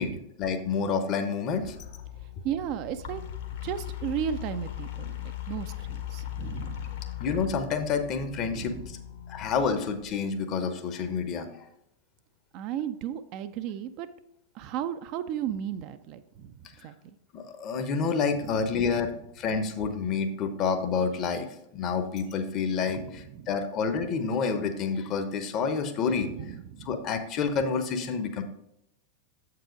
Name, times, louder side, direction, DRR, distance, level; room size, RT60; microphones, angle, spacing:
voice 1, 0.0-1.7 7.2-9.0 9.3-11.6 17.3-21.5 21.7-26.3 26.8-28.4, left 5 dB, 35° left, 8 dB, 0.9 m, -29 dB
sound 1, 1.6-10.1, left 12 dB, 60° left, 1.2 m, -39 dB
voice 2, 2.4-3.2 3.6-7.0 8.4-8.9 12.5-14.1 14.5-16.9 18.3-18.9 22.9-23.5 26.2-27.0, right 9 dB, 40° right, 10 dB, 0.4 m, -35 dB
7.5 x 4.8 x 5.0 m, 0.83 s
figure-of-eight pair, 90°, 0 cm